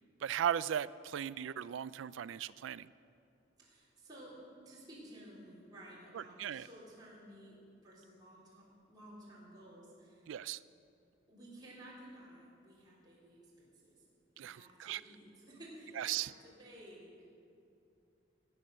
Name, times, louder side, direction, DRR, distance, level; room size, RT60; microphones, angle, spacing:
voice 1, 0.2-2.9 6.1-6.7 10.3-10.6 14.4-15.0 16.0-16.3, right 10 dB, 85° right, 17 dB, 0.3 m, -37 dB
voice 2, 3.6-4.3 4.7-10.3 11.3-14.0 14.3-17.3, right 1 dB, 20° right, -8 dB, 3.8 m, -55 dB
18.0 x 8.5 x 6.6 m, 2.6 s
head